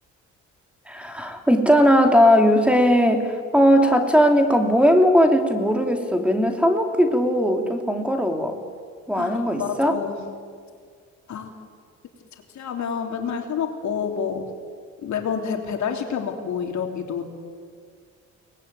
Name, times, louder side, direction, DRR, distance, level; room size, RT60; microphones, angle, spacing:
voice 1, 0.9-8.6 9.1-10.0, equal, 5° right, 5 dB, 2.7 m, -18 dB
voice 2, 9.1-10.2 11.3-11.6 12.5-14.5 15.0-17.3, left 7 dB, 70° left, 4 dB, 3.3 m, -28 dB
23.5 x 19.5 x 9.4 m, 2.1 s
cardioid pair, 90°, 30 cm